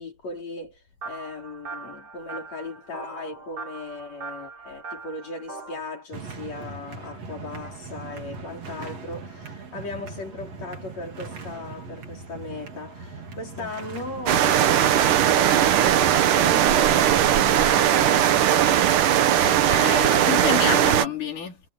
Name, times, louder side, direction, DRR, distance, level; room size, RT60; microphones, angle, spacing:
voice 1, 0.0-19.1 19.9-20.4, left 2 dB, 55° left, 5.9 m, -37 dB
sound 1, 1.0-5.8, right 4 dB, 35° right, 5.1 m, -40 dB
sound 2, 6.1-20.5, right 3 dB, 50° right, 4.3 m, -41 dB
sound 3, 14.3-21.1, right 11 dB, 75° right, 2.8 m, -19 dB
voice 2, 19.2-21.6, left 8 dB, 70° left, 5.2 m, -30 dB
omnidirectional pair, 3.7 m